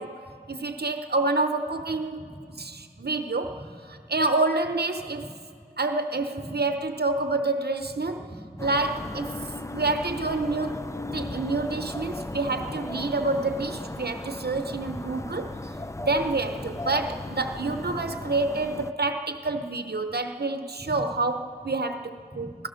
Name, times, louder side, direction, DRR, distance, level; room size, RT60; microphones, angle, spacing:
voice 1, 0.5-2.2 2.6-3.5 4.1-5.2 5.8-8.2 8.6-9.3 9.7-15.5 16.0-22.5, right 3 dB, 75° right, 7 dB, 0.7 m, -28 dB
voice 2, 2.1-3.1 3.4-4.2 5.0-5.3 6.4-6.5 8.0-8.7 9.0-9.4 11.0-11.4 14.4-15.2 15.6-15.8 17.6-17.8 19.0-19.1 20.8-21.1 21.6-21.7 22.3-22.6, right 1 dB, 5° right, 2 dB, 3.2 m, -44 dB
sound 1, 8.6-18.9, left 2 dB, 15° left, 0.5 m, -36 dB
25.5 x 17.0 x 6.3 m, 2.3 s
wide cardioid pair, 50°, 17 cm